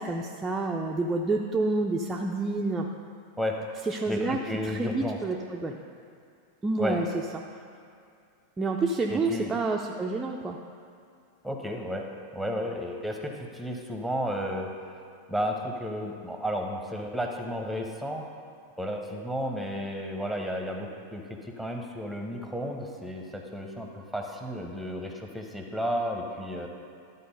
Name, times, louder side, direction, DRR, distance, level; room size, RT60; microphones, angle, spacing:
voice 1, 0.0-2.9 3.9-5.8 6.6-7.1 8.6-10.6, right 3 dB, 15° right, 0 dB, 0.5 m, -28 dB
voice 2, 4.1-5.2 6.8-7.0 9.1-9.5 11.4-12.1 12.3-14.9 15.3-18.2 18.8-26.7, equal, ahead, 2 dB, 1.0 m, -33 dB
12.5 x 4.1 x 5.4 m, 2.4 s
figure-of-eight pair, 90°, 0 cm